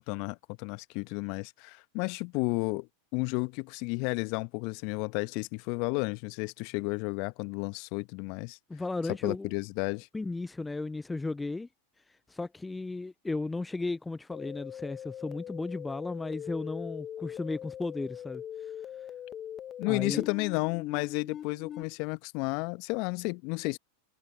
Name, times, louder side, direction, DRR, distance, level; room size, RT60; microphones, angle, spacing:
voice 1, 0.0-8.6 9.2-10.1 19.8-23.8, left 31 dB, 50° left, 1.1 m, -32 dB
voice 2, 8.7-9.5 10.1-11.7 12.3-18.7 19.9-20.3, left 3 dB, 10° left, 0.4 m, -35 dB
sound 1, 14.3-21.8, left 10 dB, 30° left, 1.4 m, -41 dB
figure-of-eight pair, 90°, 0 cm